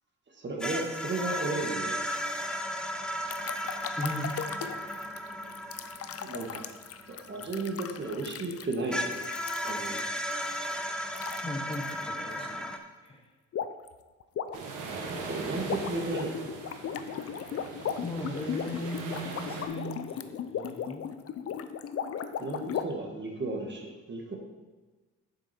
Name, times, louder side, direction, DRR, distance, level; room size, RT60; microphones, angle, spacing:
voice 1, 0.3-2.0 6.2-6.6 7.1-9.2 9.6-10.0 15.1-16.5 22.4-24.4, right 2 dB, 35° right, 1 dB, 1.7 m, -34 dB
sound 1, 0.6-8.3 8.9-12.8, equal, 5° left, 0.8 m, -35 dB
sound 2, 3.3-10.3 11.1-11.4 11.7-11.9 13.5-13.9 14.2-22.8, left 8 dB, 50° left, 0.6 m, -37 dB
voice 2, 4.0-4.4 11.4-13.3 18.0-21.1, left 1 dB, 20° left, 1 dB, 1.2 m, -38 dB
sound 3, 14.5-19.7, right 4 dB, 85° right, 1.4 m, -40 dB
7.3 x 6.4 x 4.4 m, 1.3 s
cardioid pair, 90°, 30 cm